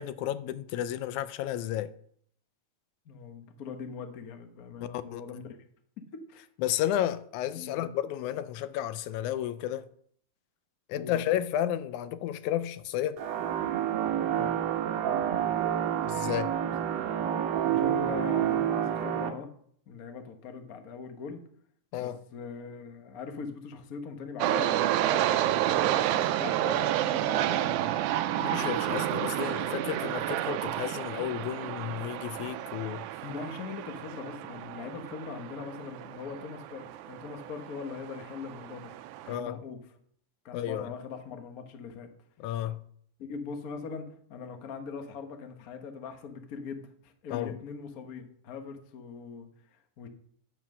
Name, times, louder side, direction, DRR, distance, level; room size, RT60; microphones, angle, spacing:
voice 1, 0.0-1.9 5.1-5.2 6.6-9.9 10.9-13.2 16.0-16.5 21.9-22.2 28.4-33.1 39.3-39.6 40.5-40.9 42.4-42.8 47.3-47.5, left 11 dB, 85° left, 2.0 m, -32 dB
voice 2, 3.0-5.4 6.3-6.5 7.5-8.0 11.0-11.1 14.3-14.5 17.6-19.5 19.9-21.4 21.9-27.9 28.3-29.1 33.2-38.9 39.2-39.8 40.4-42.1 43.2-50.1, left 5 dB, 60° left, 0.9 m, -41 dB
sound 1, 13.2-19.3, right 10 dB, 70° right, 2.0 m, -28 dB
sound 2, 24.4-39.4, right 13 dB, 90° right, 2.0 m, -30 dB
8.7 x 7.9 x 6.1 m
omnidirectional pair, 3.4 m